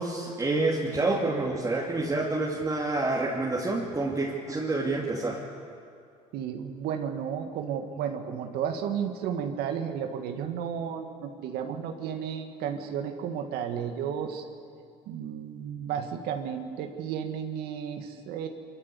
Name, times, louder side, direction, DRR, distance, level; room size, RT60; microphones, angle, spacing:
voice 1, 0.0-5.4, right 2 dB, 20° right, -3 dB, 2.6 m, -28 dB
voice 2, 6.3-14.4 15.1-18.5, right 8 dB, 70° right, 5 dB, 1.6 m, -33 dB
24.5 x 14.0 x 8.4 m, 2.3 s
supercardioid pair, 85°, 17 cm